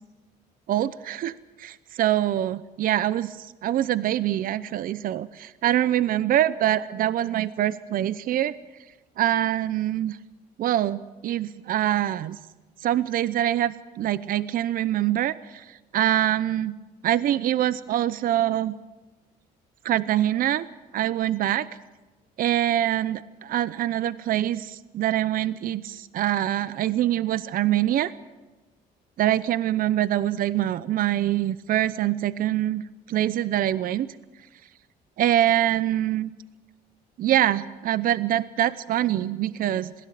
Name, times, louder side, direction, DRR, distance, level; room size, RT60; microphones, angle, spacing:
voice 1, 0.7-3.4 3.6-8.5 9.2-10.2 10.6-12.4 12.8-15.6 15.9-16.8 17.0-18.7 19.8-20.7 20.9-21.7 22.4-28.1 29.2-32.8 33.1-34.1 35.2-36.3 37.2-39.9, right 12 dB, 55° right, 17 dB, 0.7 m, -24 dB
21.5 x 17.0 x 7.6 m, 1.2 s
cardioid pair, 110°, 17 cm